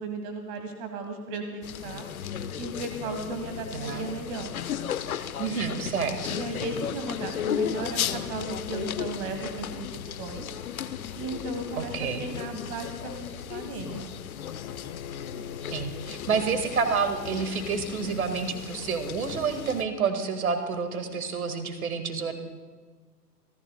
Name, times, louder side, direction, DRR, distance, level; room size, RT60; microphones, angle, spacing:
voice 1, 0.0-2.1 2.6-4.5 6.3-10.4 11.2-14.1, right 2 dB, 30° right, 6 dB, 1.4 m, -35 dB
sound 1, 1.6-19.8, left 9 dB, 60° left, 0.8 m, -35 dB
voice 2, 3.7-4.1 5.4-6.4 11.8-12.3 15.7-22.3, right 5 dB, 60° right, 7 dB, 1.9 m, -29 dB
Bowed string instrument, 14.5-19.6, left 7 dB, 30° left, 0.9 m, -44 dB
28.0 x 14.5 x 2.2 m, 1.4 s
figure-of-eight pair, 115°, 49 cm